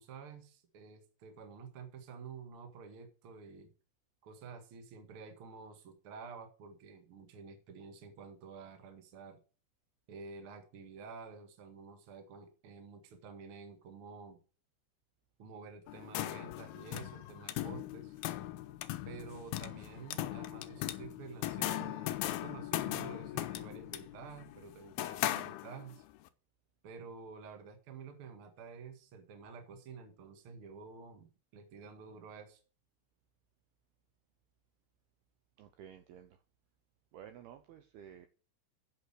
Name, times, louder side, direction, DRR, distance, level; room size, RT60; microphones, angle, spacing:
voice 1, 0.0-3.7 4.2-9.4 10.1-14.4 15.4-18.2 19.0-26.0 26.8-32.6, right 5 dB, 60° right, 1.4 m, -50 dB
sound 1, 15.9-26.0, left 14 dB, 85° left, 2.2 m, -39 dB
voice 2, 35.6-36.4 37.1-38.3, right 9 dB, 85° right, 2.2 m, -52 dB
9.2 x 6.7 x 6.4 m
omnidirectional pair, 5.4 m